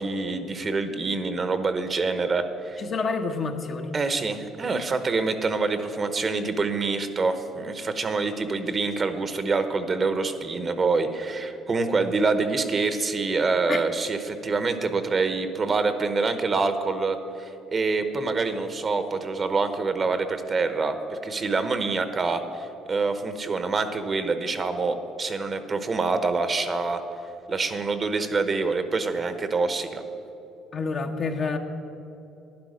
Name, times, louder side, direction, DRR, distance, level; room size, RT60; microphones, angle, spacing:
voice 1, 0.0-2.8 3.9-27.0 27.5-30.0, right 4 dB, 40° right, 9 dB, 1.0 m, -26 dB
voice 2, 2.8-3.9 13.7-13.8 30.7-31.6, left 4 dB, 45° left, 4 dB, 1.1 m, -28 dB
11.0 x 10.5 x 5.2 m, 3.0 s
supercardioid pair, 70°, 0 cm